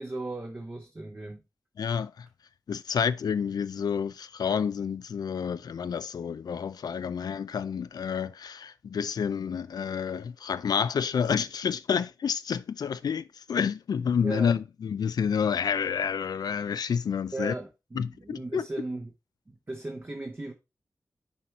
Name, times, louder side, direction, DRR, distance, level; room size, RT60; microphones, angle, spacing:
voice 1, 0.0-1.4 14.2-14.6 17.3-19.1 19.5-20.5, right 2 dB, 30° right, 1.0 m, -37 dB
voice 2, 1.8-2.3 2.7-17.5 18.0-18.6, left 7 dB, 80° left, 0.4 m, -29 dB
7.0 x 4.4 x 4.6 m
wide cardioid pair, 75°, 7 cm